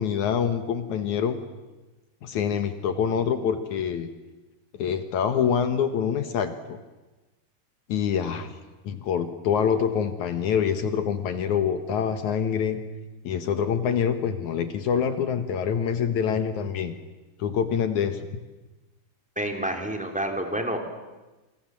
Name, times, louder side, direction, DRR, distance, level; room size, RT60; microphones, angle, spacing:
voice 1, 0.0-1.4 2.2-4.1 4.8-6.8 7.9-8.6 8.8-12.8 13.2-16.9 17.4-18.2, left 7 dB, 70° left, 8 dB, 1.8 m, -25 dB
voice 2, 19.4-20.8, right 1 dB, ahead, 3 dB, 2.0 m, -28 dB
28.0 x 26.5 x 7.6 m, 1.1 s
omnidirectional pair, 5.2 m